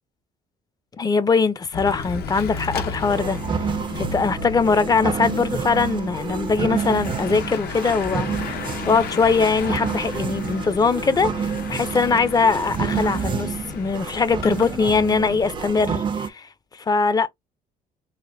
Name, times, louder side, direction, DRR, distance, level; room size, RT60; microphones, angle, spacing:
voice 1, 1.0-3.7 4.0-8.6 8.9-17.3, left 4 dB, 25° left, 0.5 m, -22 dB
Bicycle / Mechanisms, 1.7-15.7, left 5 dB, 70° left, 0.8 m, -34 dB
sound 1, 3.0-16.3, right 6 dB, 30° right, 0.4 m, -29 dB
4.1 x 2.5 x 2.5 m
cardioid pair, 110°, 17 cm